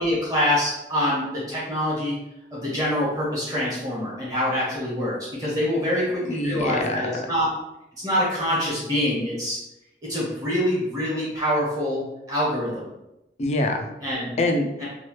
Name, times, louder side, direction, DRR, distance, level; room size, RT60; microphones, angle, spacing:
voice 1, 0.0-2.2 2.5-7.5 8.0-9.6 10.1-12.0 12.3-12.8 14.0-14.4 14.8-14.9, left 1 dB, 20° right, -7 dB, 1.2 m, -25 dB
voice 2, 5.8-7.3 13.4-13.9 14.4-14.8, left 2 dB, 40° left, 4 dB, 0.3 m, -26 dB
2.9 x 2.3 x 3.1 m, 0.91 s
head